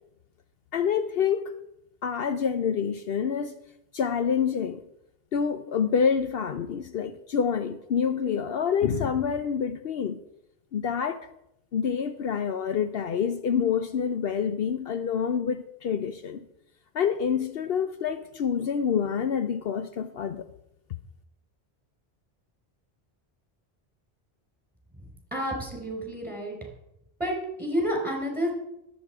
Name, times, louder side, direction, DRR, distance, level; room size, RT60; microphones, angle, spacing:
voice 1, 0.7-1.4 2.0-3.5 3.9-4.8 5.3-10.2 10.7-11.2 11.7-16.4 16.9-20.4, left 7 dB, 70° left, 0.9 m, -27 dB
voice 2, 25.3-26.6 27.2-28.5, equal, 10° right, 4.7 m, -29 dB
21.5 x 8.3 x 4.8 m
omnidirectional pair, 1.0 m